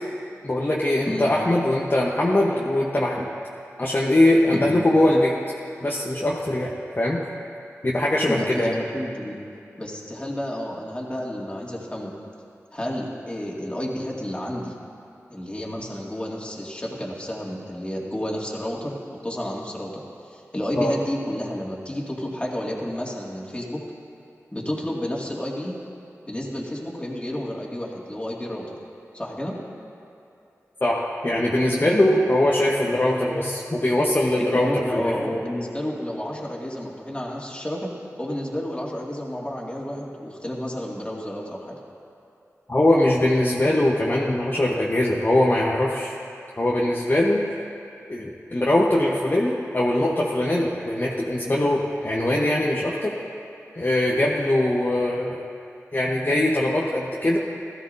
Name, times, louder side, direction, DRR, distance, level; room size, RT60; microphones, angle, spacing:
voice 1, 0.4-3.3 3.8-5.4 5.8-6.7 7.0-7.2 7.8-8.7 20.8-20.9 30.8-35.2 42.7-46.1 46.6-47.4 48.1-53.1 53.7-55.4 55.9-57.4, left 1 dB, 40° left, -4 dB, 1.2 m, -21 dB
voice 2, 8.2-9.4 9.8-12.1 12.7-14.7 15.3-19.0 19.2-20.0 20.3-23.8 24.5-25.7 26.3-28.8 29.1-29.6 34.5-37.9 38.2-41.8, left 1 dB, 20° left, -3 dB, 2.4 m, -30 dB
16.0 x 13.5 x 2.8 m, 2.6 s
cardioid pair, 40°, 5 cm